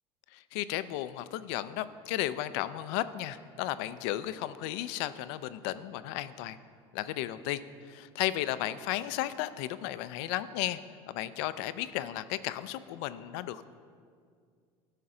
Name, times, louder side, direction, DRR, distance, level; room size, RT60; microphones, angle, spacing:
voice 1, 0.3-6.6 6.9-10.8 11.1-13.7, left 14 dB, 75° left, 14 dB, 0.4 m, -34 dB
11.0 x 5.8 x 3.8 m, 2.1 s
supercardioid pair, 90°, 14 cm